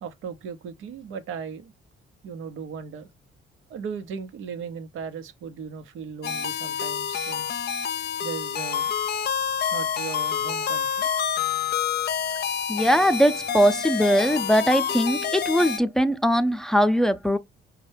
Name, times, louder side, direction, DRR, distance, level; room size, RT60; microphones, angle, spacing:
voice 1, 0.0-1.7 2.2-3.1 3.7-7.6 8.2-8.9 9.7-11.1, right 6 dB, 85° right, 0.8 m, -37 dB
sound 1, 6.2-15.8, left 8 dB, 55° left, 0.6 m, -28 dB
voice 2, 12.7-17.4, equal, ahead, 0.5 m, -21 dB
5.3 x 2.2 x 3.3 m
cardioid pair, 90°, 20 cm